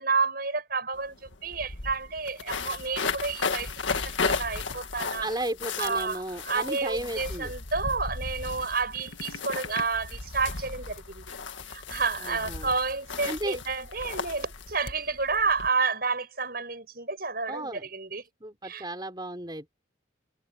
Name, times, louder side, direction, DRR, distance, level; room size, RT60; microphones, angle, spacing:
voice 1, 0.0-5.3 5.8-11.2 11.6-18.2 18.6-18.8, right 4 dB, 50° right, 7.7 m, -30 dB
sound 1, 0.9-1.0 1.3-15.7, left 4 dB, 70° left, 1.9 m, -35 dB
voice 2, 5.2-7.5 12.2-12.7 13.2-13.6 17.5-17.8 18.4-19.7, right 1 dB, 20° right, 5.0 m, -34 dB
head